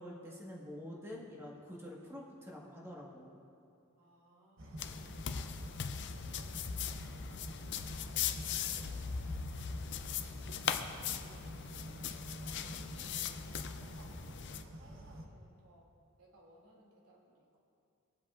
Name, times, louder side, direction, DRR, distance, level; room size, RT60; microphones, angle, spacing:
voice 1, 0.0-3.4, left 1 dB, 10° right, -4 dB, 1.5 m, -47 dB
voice 2, 4.0-9.3 9.6-10.1 10.6-15.9 16.2-17.6, right 1 dB, 85° right, -4 dB, 2.5 m, -63 dB
sound 1, 4.6-15.3, right 1 dB, 65° right, 1.0 m, -49 dB
sound 2, 4.8-14.6, left 7 dB, 55° left, 0.5 m, -39 dB
22.5 x 7.5 x 2.5 m, 2.5 s
head